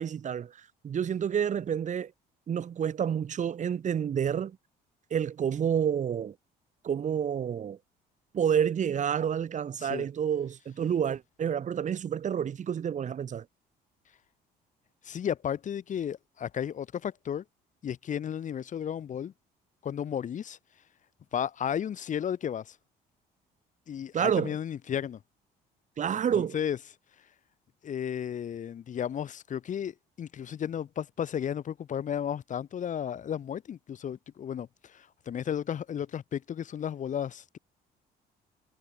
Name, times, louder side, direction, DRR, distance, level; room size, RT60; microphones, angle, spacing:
voice 1, 0.0-2.1 2.5-4.6 5.1-6.3 6.8-7.8 8.3-13.4 24.1-24.5 26.0-26.6, right 8 dB, 45° right, 6.4 m, -29 dB
voice 2, 15.0-17.4 17.8-19.3 19.8-20.6 21.3-22.8 23.9-25.2 26.3-26.8 27.8-37.6, left 9 dB, 50° left, 3.1 m, -33 dB
cardioid pair, 110°, 17 cm